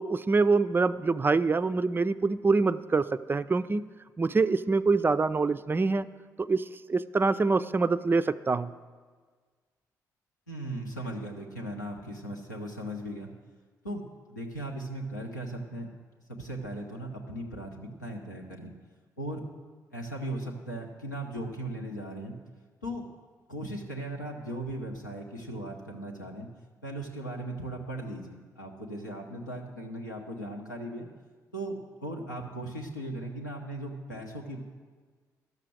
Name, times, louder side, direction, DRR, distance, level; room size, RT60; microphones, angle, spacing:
voice 1, 0.0-3.8 4.2-6.1 6.4-8.7, right 4 dB, 25° right, 13 dB, 0.4 m, -25 dB
voice 2, 10.5-13.3 13.8-14.0 14.3-15.9 16.3-18.7 19.2-19.4 19.9-22.4 22.8-23.0 23.5-26.5 26.8-31.1 31.5-34.6, right 1 dB, 90° left, 0 dB, 0.9 m, -37 dB
12.0 x 6.7 x 6.2 m, 1.5 s
figure-of-eight pair, 40°, 9 cm